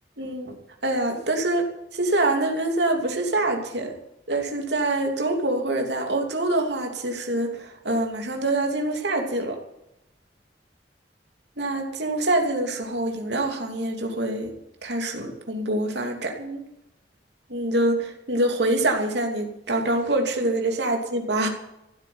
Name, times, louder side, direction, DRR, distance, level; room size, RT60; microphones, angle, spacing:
voice 1, 0.2-0.6 0.8-1.7 1.9-4.0 4.3-9.6 11.6-14.5 14.8-16.6 17.5-21.5, right 2 dB, 70° right, 3 dB, 2.9 m, -25 dB
15.0 x 8.4 x 9.4 m, 0.85 s
head